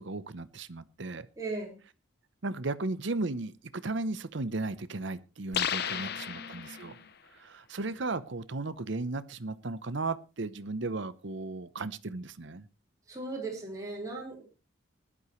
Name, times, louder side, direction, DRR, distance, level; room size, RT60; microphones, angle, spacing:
voice 1, 0.0-1.3 2.4-6.9 7.3-12.7, right 3 dB, 65° right, 13 dB, 0.8 m, -35 dB
voice 2, 1.4-1.8 5.6-7.0 13.1-14.4, right 3 dB, 15° right, -1 dB, 4.9 m, -39 dB
sound 1, 5.5-7.1, left 8 dB, 50° left, 0.9 m, -33 dB
20.0 x 11.5 x 3.2 m, 0.30 s
head